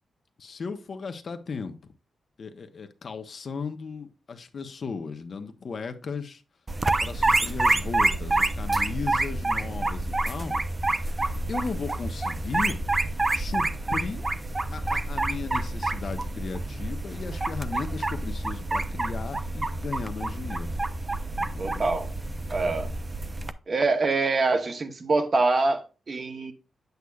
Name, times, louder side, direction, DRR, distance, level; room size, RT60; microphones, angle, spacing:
voice 1, 0.4-1.7 2.4-6.4 7.0-10.6 11.5-12.8 13.3-14.2 14.7-20.8 21.4-21.8, left 5 dB, 50° left, 0.8 m, -36 dB
sound 1, 6.7-23.5, right 2 dB, 25° right, 0.5 m, -28 dB
voice 2, 21.6-22.1 22.5-22.9 23.7-26.5, right 3 dB, 40° right, 0.9 m, -25 dB
8.1 x 8.0 x 2.4 m
wide cardioid pair, 120°, 0 cm